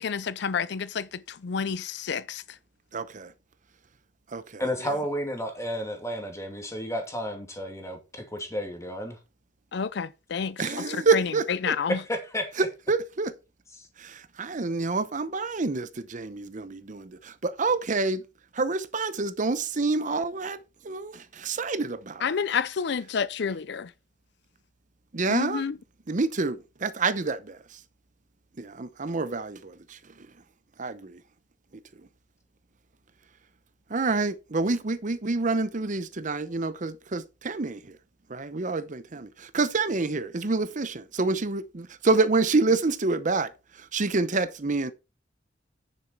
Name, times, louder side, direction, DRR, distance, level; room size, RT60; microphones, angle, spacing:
voice 1, 0.0-2.4 9.7-12.0 22.2-23.9 25.3-25.7, left 6 dB, 65° left, 0.5 m, -29 dB
voice 2, 2.9-3.3 4.3-4.4 10.6-11.8 12.6-13.3 14.0-18.2 18.6-20.6 20.8-22.2 25.1-25.6 26.1-27.6 28.6-29.7 30.8-31.1 33.9-37.8 38.3-43.5 43.9-44.9, right 3 dB, 45° right, 0.8 m, -27 dB
voice 3, 4.6-9.2 12.0-12.7 13.7-13.9, equal, 15° left, 2.6 m, -32 dB
10.0 x 7.1 x 4.5 m
head